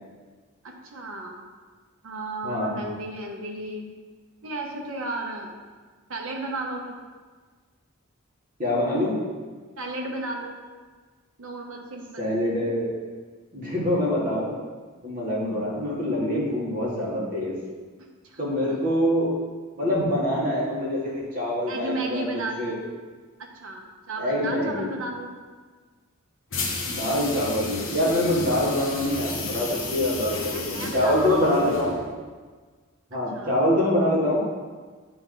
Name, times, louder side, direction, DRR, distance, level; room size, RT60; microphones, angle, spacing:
voice 1, 0.6-1.5 2.0-3.9 4.4-5.5 6.1-7.0 9.8-10.6 11.4-12.3 18.0-18.8 21.7-22.8 23.4-25.3 30.5-31.5 33.3-33.5, right 2 dB, 70° right, 1 dB, 0.9 m, -34 dB
voice 2, 2.4-2.8 8.6-9.1 12.2-12.9 13.5-14.5 15.0-17.6 18.4-19.3 19.8-22.3 22.6-22.8 24.2-24.9 26.8-32.0 33.1-34.4, left 1 dB, 40° right, -6 dB, 1.8 m, -25 dB
sound 1, 26.5-32.1, left 3 dB, 60° left, 0.9 m, -33 dB
8.5 x 3.5 x 3.9 m, 1.5 s
head